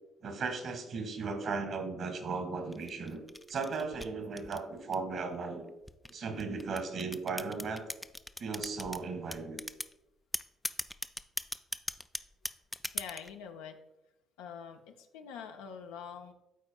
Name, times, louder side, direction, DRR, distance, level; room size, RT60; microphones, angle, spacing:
voice 1, 0.2-3.2 3.5-5.7 6.1-7.8 8.4-9.6, right 4 dB, 60° right, 7 dB, 1.6 m, -36 dB
sound 1, 2.7-5.2 5.9-9.0 9.3-9.9 10.3-13.3, left 1 dB, 10° left, 0.4 m, -38 dB
voice 2, 12.9-13.8 14.4-16.3, left 7 dB, 80° left, 4 dB, 0.6 m, -45 dB
12.0 x 4.3 x 2.3 m, 0.93 s
hypercardioid pair, 55°, 0 cm